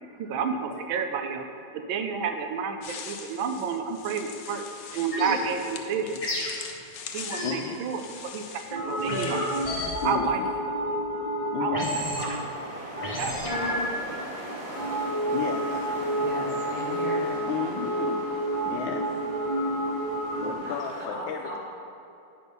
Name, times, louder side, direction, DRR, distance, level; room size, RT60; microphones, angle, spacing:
voice 1, 0.2-1.5 1.7-4.6 4.9-6.2 7.1-8.0 8.3-9.6 10.0-10.4 11.6-11.8 12.2-12.4 13.2-14.1, right 6 dB, 80° right, 6 dB, 1.5 m, -30 dB
sound 1, 2.8-10.1, left 6 dB, 65° left, 0.9 m, -43 dB
sound 2, 5.1-5.4 6.2-6.6 7.3-7.6 8.7-12.5 13.0-14.0 14.7-20.5, equal, 20° left, 1.1 m, -29 dB
voice 2, 7.4-7.8 10.0-10.5 11.5-12.0 15.3-16.0 17.5-18.2 18.6-19.2 20.4-21.6, left 8 dB, 80° left, 1 dB, 1.4 m, -33 dB
sound 3, 12.1-21.1, right 1 dB, 25° right, 2.1 m, -40 dB
voice 3, 16.1-17.3 20.6-21.6, equal, 45° right, -5 dB, 2.0 m, -37 dB
9.3 x 6.1 x 5.3 m, 2.7 s
omnidirectional pair, 2.1 m